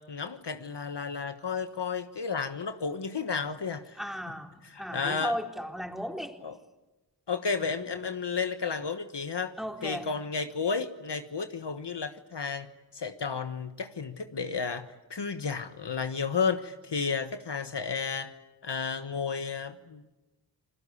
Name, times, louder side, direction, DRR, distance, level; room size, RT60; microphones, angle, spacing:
voice 1, 0.0-4.0 4.7-5.3 6.4-6.5 7.3-9.5 9.8-18.3 18.6-20.0, left 5 dB, 65° left, 8 dB, 1.4 m, -32 dB
voice 2, 4.0-6.4 7.6-7.7 9.6-10.1, equal, ahead, 2 dB, 4.0 m, -36 dB
29.5 x 20.5 x 8.6 m, 1.1 s
cardioid pair, 40°, 44 cm